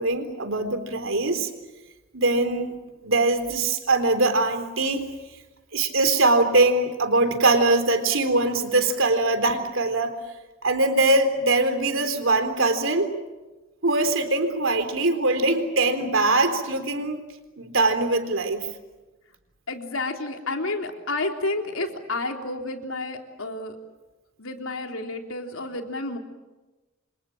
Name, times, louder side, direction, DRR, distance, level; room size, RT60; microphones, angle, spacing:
voice 1, 0.0-1.5 2.1-2.8 3.0-5.0 5.7-10.2 10.6-13.1 13.8-17.2 17.6-18.7, right 2 dB, 70° right, 8 dB, 3.9 m, -22 dB
voice 2, 19.7-23.8 24.4-26.2, left 2 dB, 80° left, 3 dB, 3.7 m, -30 dB
29.0 x 26.0 x 7.4 m, 1.1 s
head